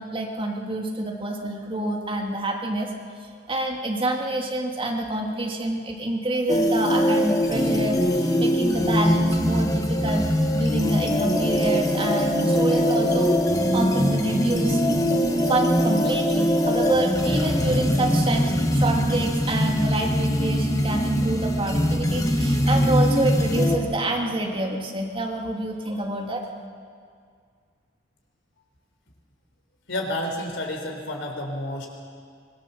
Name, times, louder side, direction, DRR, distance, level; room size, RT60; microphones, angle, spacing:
voice 1, 0.0-2.9 3.5-13.3 13.7-14.8 15.5-26.4, right 1 dB, 30° right, 1 dB, 2.4 m, -27 dB
sound 1, 6.5-23.8, equal, 20° left, 1.6 m, -22 dB
voice 2, 29.9-31.9, left 1 dB, 70° left, 2 dB, 4.0 m, -30 dB
24.5 x 21.5 x 7.1 m, 2.1 s
head